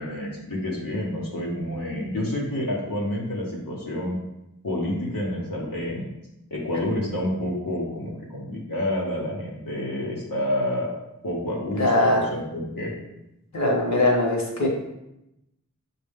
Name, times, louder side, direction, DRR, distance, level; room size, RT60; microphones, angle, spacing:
voice 1, 0.0-4.2 4.6-6.0 6.5-10.9 11.2-12.9, left 1 dB, 85° left, -4 dB, 0.9 m, -29 dB
voice 2, 11.8-12.3 13.5-14.7, left 1 dB, 55° left, -1 dB, 1.0 m, -21 dB
6.1 x 2.2 x 3.5 m, 0.88 s
wide cardioid pair, 40°, 33 cm